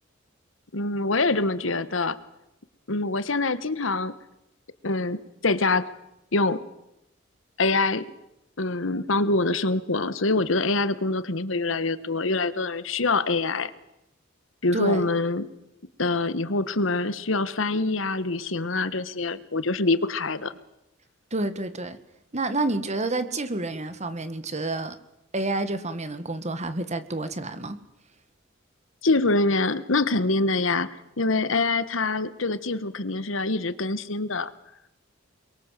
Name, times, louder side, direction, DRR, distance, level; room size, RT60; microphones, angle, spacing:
voice 1, 0.7-2.2 2.9-4.1 4.8-5.2 5.4-5.9 6.3-6.6 7.6-8.1 8.6-13.7 14.6-15.5 16.0-20.5 29.0-34.5, left 3 dB, 70° left, 14 dB, 1.4 m, -25 dB
voice 2, 14.7-15.1 21.3-22.0 22.3-25.0 25.3-27.8, right 2 dB, 35° right, 11 dB, 1.7 m, -29 dB
29.0 x 22.5 x 7.6 m, 0.87 s
head